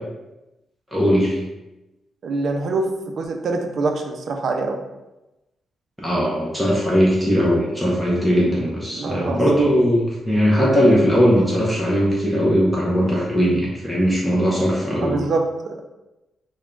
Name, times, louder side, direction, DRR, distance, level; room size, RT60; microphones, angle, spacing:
voice 1, 0.9-1.4 6.0-15.2, equal, 5° right, -5 dB, 0.7 m, -19 dB
voice 2, 2.2-4.8 8.9-9.4 15.0-15.8, right 3 dB, 55° right, 3 dB, 0.4 m, -24 dB
3.5 x 2.2 x 3.7 m, 1.0 s
cardioid pair, 120°, 0 cm